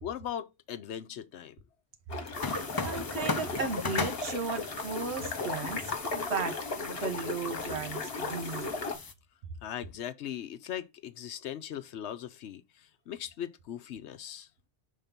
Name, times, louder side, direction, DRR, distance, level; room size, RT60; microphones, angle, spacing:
voice 1, 0.0-1.6 9.6-14.5, left 10 dB, 80° left, 0.9 m, -39 dB
sound 1, 2.1-9.0, left 3 dB, 60° left, 1.5 m, -36 dB
sound 2, 2.3-9.1, left 4 dB, 35° left, 0.3 m, -38 dB
voice 2, 2.8-5.8 6.1-8.7, right 5 dB, 70° right, 1.2 m, -35 dB
5.7 x 3.5 x 5.1 m
omnidirectional pair, 1.2 m